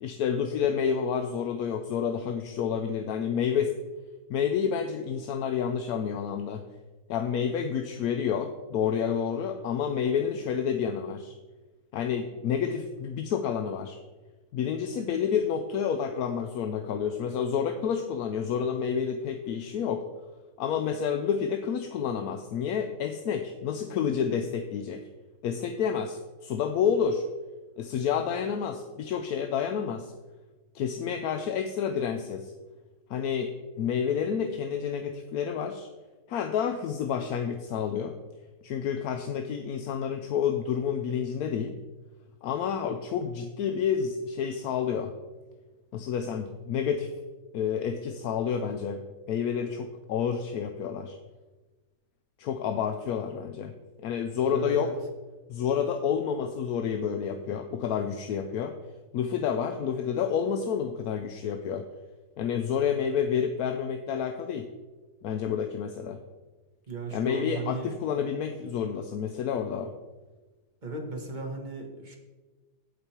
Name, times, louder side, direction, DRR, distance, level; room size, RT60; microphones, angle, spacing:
voice 1, 0.0-3.7 4.3-6.6 7.1-11.3 11.9-14.0 14.5-20.0 20.6-25.1 25.4-27.2 27.8-30.1 30.7-32.5 33.1-35.9 36.3-38.1 38.6-41.7 42.4-45.1 45.9-47.1 47.5-51.2 52.4-53.7 54.0-55.0 55.5-58.7 59.1-61.8 62.4-64.7 65.2-66.2 67.1-69.9, left 7 dB, 70° left, 7 dB, 1.1 m, -29 dB
voice 2, 54.5-54.9 66.9-67.9 70.8-72.2, right 3 dB, 30° right, 1 dB, 1.6 m, -36 dB
15.0 x 5.2 x 4.4 m, 1.2 s
omnidirectional pair, 1.7 m